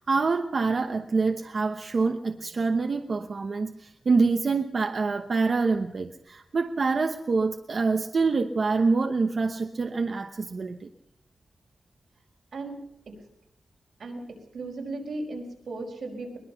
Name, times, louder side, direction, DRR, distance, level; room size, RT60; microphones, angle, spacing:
voice 1, 0.0-10.9, right 4 dB, 50° right, 6 dB, 0.9 m, -26 dB
voice 2, 14.0-16.4, right 2 dB, 85° right, 1 dB, 5.1 m, -36 dB
22.0 x 21.0 x 5.8 m, 0.78 s
wide cardioid pair, 160°, 0 cm